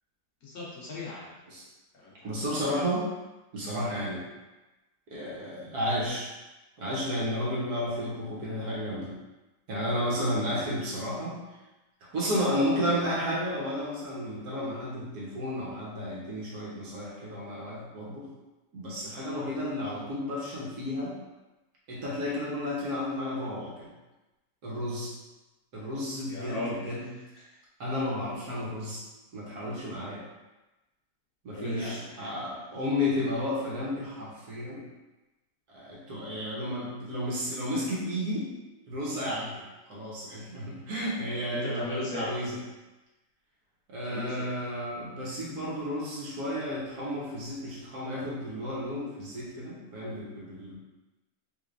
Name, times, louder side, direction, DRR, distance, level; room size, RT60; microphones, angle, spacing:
voice 1, 0.4-1.4 1.9-2.4 19.2-19.4 26.3-27.6 31.5-32.5 41.5-42.3 44.0-44.5, left 2 dB, 65° left, -5 dB, 1.4 m, -38 dB
voice 2, 2.2-3.0 3.5-4.2 5.1-6.3 6.8-9.1 9.7-11.4 12.1-18.3 18.7-21.1 21.9-23.9 24.6-25.1 25.7-26.6 26.8-27.0 27.8-29.0 29.3-30.2 31.4-34.8 35.7-38.5 38.9-39.6 39.9-42.5 43.9-50.8, left 1 dB, 70° right, -6 dB, 1.6 m, -32 dB
3.8 x 3.3 x 2.5 m, 1.1 s
omnidirectional pair, 1.7 m